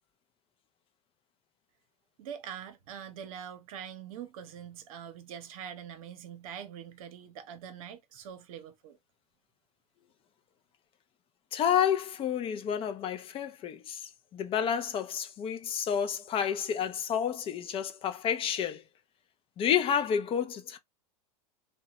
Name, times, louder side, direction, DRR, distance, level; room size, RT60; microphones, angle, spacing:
voice 1, 2.2-9.0, right 8 dB, 60° right, 0.8 m, -44 dB
voice 2, 11.5-18.8 19.6-20.8, left 8 dB, 30° left, 0.4 m, -30 dB
2.8 x 2.2 x 2.7 m
hypercardioid pair, 95°, 20 cm